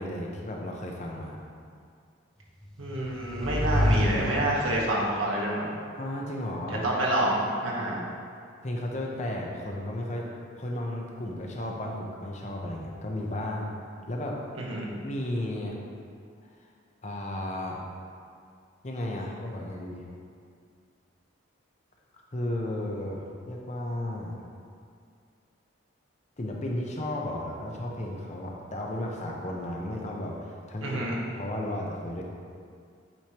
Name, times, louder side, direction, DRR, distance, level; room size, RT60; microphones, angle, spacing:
voice 1, 0.0-1.4 6.0-6.8 8.6-10.3 10.6-13.7 14.1-14.4 15.0-15.8 17.0-17.8 18.8-20.0 22.3-24.4 26.4-31.0 31.4-32.2, left 1 dB, 35° left, -1 dB, 0.7 m, -34 dB
sound 1, 2.7-5.1, left 1 dB, 5° left, 0.5 m, -28 dB
voice 2, 2.8-5.7 6.7-8.0 14.6-14.9 30.8-31.2, right 1 dB, 90° right, -4 dB, 1.4 m, -28 dB
8.7 x 5.0 x 3.0 m, 2.2 s
head